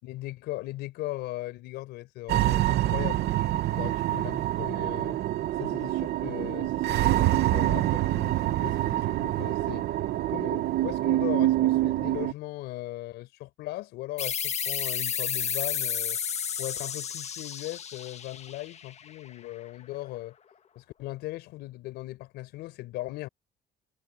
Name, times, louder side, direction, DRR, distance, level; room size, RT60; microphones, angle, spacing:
voice 1, 0.0-5.2 5.6-9.9 10.3-16.2 16.6-20.3 20.8-23.3, left 17 dB, 85° left, 4.3 m, -38 dB
sound 1, 2.3-12.3, right 15 dB, 70° right, 1.0 m, -26 dB
sound 2, 14.2-19.5, left 7 dB, 40° left, 1.4 m, -32 dB
cardioid pair, 110°, 17 cm